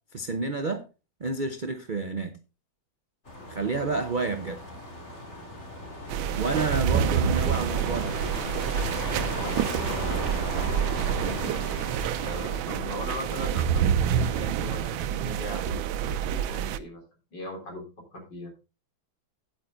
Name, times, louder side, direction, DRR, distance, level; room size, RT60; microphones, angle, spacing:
voice 1, 0.1-0.8 1.2-2.4 3.5-4.6 6.3-8.2, right 3 dB, 60° right, 0.5 m, -29 dB
sound 1, 3.3-12.6, left 1 dB, 35° left, 3.2 m, -37 dB
sound 2, 6.1-16.8, right 9 dB, 85° right, 1.4 m, -27 dB
voice 2, 9.1-11.5 12.2-17.0 17.3-17.8 18.1-18.5, left 2 dB, 65° left, 4.5 m, -40 dB
9.4 x 8.8 x 3.8 m
omnidirectional pair, 2.1 m